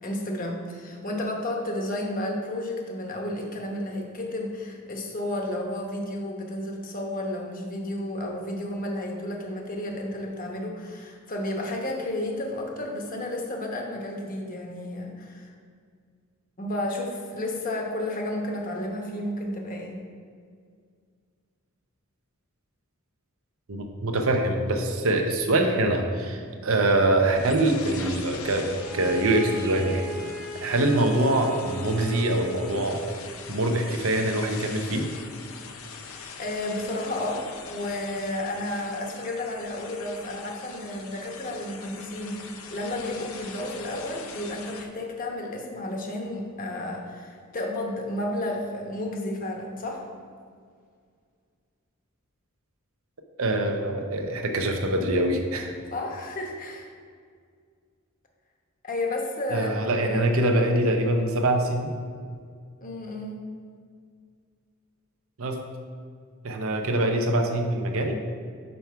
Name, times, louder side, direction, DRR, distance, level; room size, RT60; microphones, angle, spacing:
voice 1, 0.0-15.5 16.6-20.0 36.0-50.0 55.9-56.9 58.8-59.7 60.0-60.2 62.8-63.4, left 1 dB, 40° left, 1 dB, 1.0 m, -32 dB
voice 2, 23.7-30.0 30.6-33.0 33.5-35.1 53.4-55.7 59.5-61.9 65.4-65.6 66.4-68.2, right 1 dB, 75° right, 3 dB, 0.8 m, -24 dB
sound 1, 27.3-44.8, left 5 dB, 70° left, 0.7 m, -42 dB
Bowed string instrument, 28.7-33.0, right 1 dB, 5° right, 0.7 m, -37 dB
5.4 x 4.6 x 5.6 m, 2.1 s
head